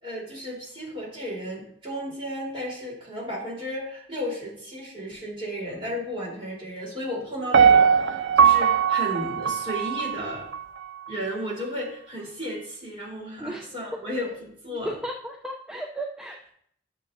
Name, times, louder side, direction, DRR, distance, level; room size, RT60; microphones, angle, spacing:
voice 1, 0.0-10.4 11.1-15.0, equal, 30° right, -5 dB, 3.5 m, -34 dB
Piano, 7.5-10.6 11.1-11.2, right 7 dB, 75° right, 0.4 m, -20 dB
voice 2, 14.8-16.5, right 1 dB, 5° right, 0 dB, 0.4 m, -34 dB
12.0 x 6.9 x 2.6 m, 0.67 s
head